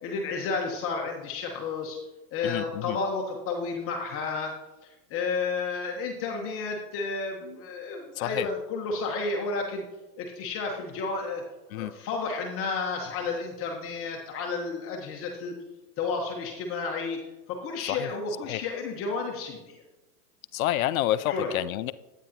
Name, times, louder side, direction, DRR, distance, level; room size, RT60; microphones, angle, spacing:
voice 1, 0.0-2.0 2.3-4.5 5.1-9.8 10.2-11.4 11.7-15.5 16.0-17.2 17.5-19.8 21.3-21.5, left 4 dB, 30° left, 1 dB, 1.1 m, -31 dB
voice 2, 2.4-3.0 8.2-8.5 11.7-11.9 17.8-18.1 18.5-18.6 20.5-21.9, left 13 dB, 60° left, 16 dB, 0.5 m, -28 dB
11.0 x 9.1 x 2.8 m, 1.1 s
hypercardioid pair, 140°, 47 cm